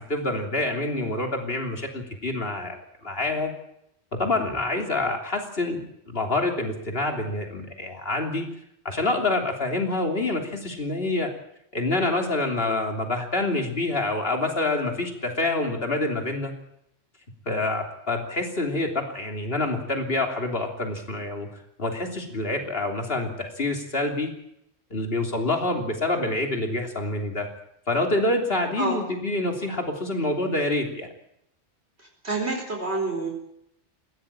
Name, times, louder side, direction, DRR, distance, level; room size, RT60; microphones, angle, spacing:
voice 1, 0.1-2.7 3.0-3.5 4.1-8.5 8.9-11.3 11.7-16.5 17.5-21.5 21.8-24.3 24.9-27.5 27.9-31.1, left 2 dB, 55° left, 3 dB, 3.5 m, -27 dB
voice 2, 32.2-33.3, right 3 dB, 65° right, 1 dB, 4.6 m, -27 dB
21.5 x 16.5 x 8.8 m, 0.78 s
omnidirectional pair, 1.2 m